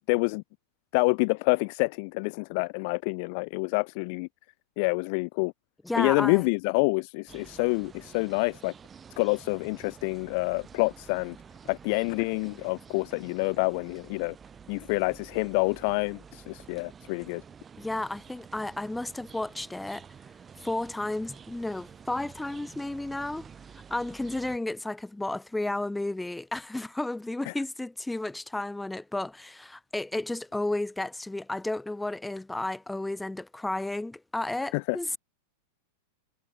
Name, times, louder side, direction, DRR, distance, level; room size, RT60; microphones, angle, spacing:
voice 1, 0.1-0.4 0.9-4.3 4.8-5.5 6.0-8.7 9.2-11.4 11.7-14.3 14.7-17.4 27.5-27.6 34.7-35.2, left 33 dB, 45° left, 0.7 m, -27 dB
voice 2, 5.8-6.4 17.8-20.1 20.6-23.5 23.9-35.2, left 2 dB, 5° left, 1.2 m, -32 dB
sound 1, 7.3-24.6, right 7 dB, 20° right, 5.5 m, -50 dB
figure-of-eight pair, 90°, 0 cm